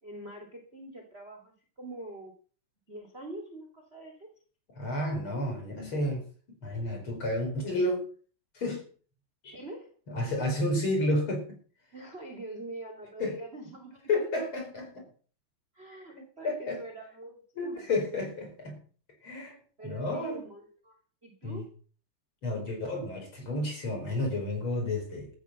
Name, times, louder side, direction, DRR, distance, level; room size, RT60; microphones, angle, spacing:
voice 1, 0.0-2.3 2.9-4.3 9.5-9.9 11.9-14.1 15.7-18.0 19.8-20.9 21.2-21.7, right 2 dB, 20° right, 3 dB, 2.1 m, -44 dB
voice 2, 4.8-6.3 6.6-8.1 8.5-8.8 9.4-9.5 10.1-11.6 13.2-13.4 14.1-15.1 16.4-16.8 17.6-18.8 19.2-19.6 19.8-20.4 21.4-21.6 22.4-25.3, left 1 dB, 30° left, 3 dB, 5.3 m, -31 dB
14.0 x 10.0 x 6.0 m, 0.42 s
omnidirectional pair, 5.0 m